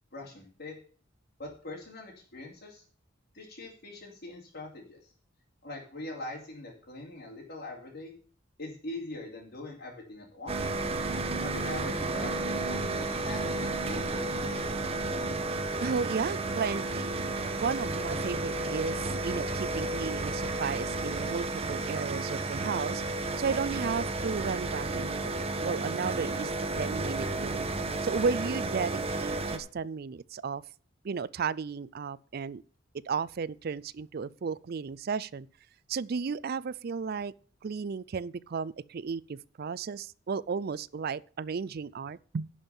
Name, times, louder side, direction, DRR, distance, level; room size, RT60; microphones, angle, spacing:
voice 1, 0.1-0.7 1.4-2.8 3.3-5.1 5.6-8.1 8.6-10.6 11.4-14.7, left 2 dB, 55° left, 3.1 m, -42 dB
sound 1, 10.5-29.6, right 2 dB, 30° right, 1.1 m, -32 dB
voice 2, 15.8-17.1 17.5-27.7 28.0-30.6 31.0-32.6 33.0-35.5 35.9-37.3 37.6-42.5, right 5 dB, 50° right, 0.4 m, -34 dB
11.5 x 5.6 x 7.0 m
head